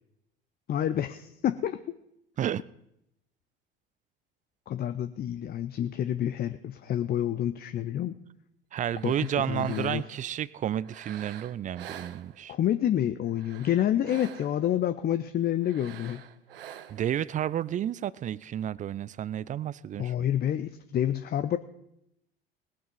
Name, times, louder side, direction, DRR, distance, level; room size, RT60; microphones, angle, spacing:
voice 1, 0.7-2.0 4.7-8.1 9.0-9.1 9.5-10.0 12.5-16.2 20.0-21.6, left 11 dB, 35° left, 10 dB, 0.7 m, -28 dB
voice 2, 8.7-12.5 16.9-20.3, right 10 dB, 25° right, 21 dB, 0.5 m, -31 dB
sound 1, 8.8-10.3 10.8-12.7 13.2-14.7 15.6-17.2, right 10 dB, 75° right, 0.7 m, -47 dB
20.0 x 7.5 x 5.4 m, 0.80 s
figure-of-eight pair, 65°, 29 cm